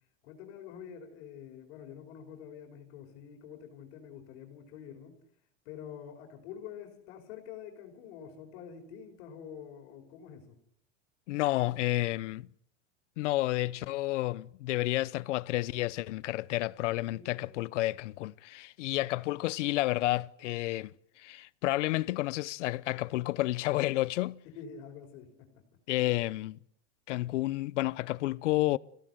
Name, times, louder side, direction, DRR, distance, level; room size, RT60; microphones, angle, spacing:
voice 1, 0.2-5.2 5.7-10.6 17.0-17.8 24.4-25.6, left 8 dB, 60° left, 5.3 m, -47 dB
voice 2, 11.3-12.5 13.2-24.4 25.9-26.6 27.1-28.8, left 17 dB, 75° left, 0.9 m, -30 dB
27.0 x 17.0 x 8.0 m
supercardioid pair, 145°, 36 cm